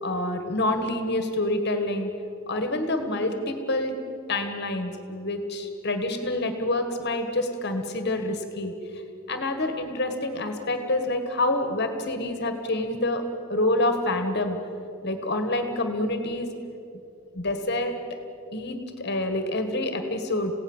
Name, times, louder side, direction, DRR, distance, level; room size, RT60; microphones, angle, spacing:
voice 1, 0.0-2.1 2.5-3.9 4.3-9.0 9.3-13.2 13.5-14.6 15.0-16.5 17.3-17.9 18.5-20.5, left 1 dB, 45° left, 7 dB, 1.7 m, -27 dB
28.0 x 17.0 x 7.3 m, 2.8 s
head